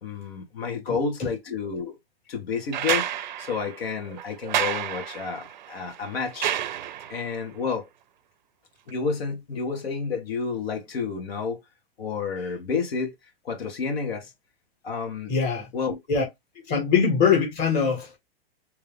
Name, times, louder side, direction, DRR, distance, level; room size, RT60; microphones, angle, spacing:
voice 1, 0.0-2.0 2.3-6.5 7.1-7.9 8.9-11.6 12.0-13.1 13.4-14.3 14.8-15.3 15.7-16.0, left 5 dB, 75° left, 1.9 m, -30 dB
voice 2, 0.9-1.3 15.3-15.7 16.1-16.2 16.7-18.2, left 6 dB, 25° left, 1.6 m, -23 dB
sound 1, 2.7-7.3 8.9-9.0, right 11 dB, 50° right, 0.5 m, -30 dB
3.4 x 2.9 x 3.5 m
hypercardioid pair, 175°, 30 cm